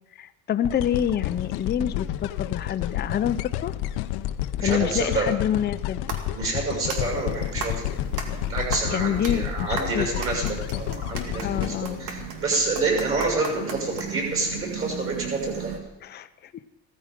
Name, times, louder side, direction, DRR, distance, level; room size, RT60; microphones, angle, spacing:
voice 1, 0.2-3.7 4.6-6.0 8.9-10.2 11.4-12.0 16.0-16.5, left 9 dB, 25° left, 10 dB, 0.5 m, -27 dB
sound 1, 0.6-12.8 13.4-13.5, left 13 dB, 80° left, 0.8 m, -30 dB
voice 2, 4.6-5.3 6.3-7.9 8.5-15.7, right 3 dB, 35° right, 0 dB, 6.6 m, -28 dB
sound 2, 5.8-14.4, right 5 dB, 85° right, 2.4 m, -38 dB
sound 3, 7.0-15.8, right 7 dB, 70° right, 2.2 m, -38 dB
16.0 x 14.0 x 5.2 m, 1.0 s
cardioid pair, 145°, 38 cm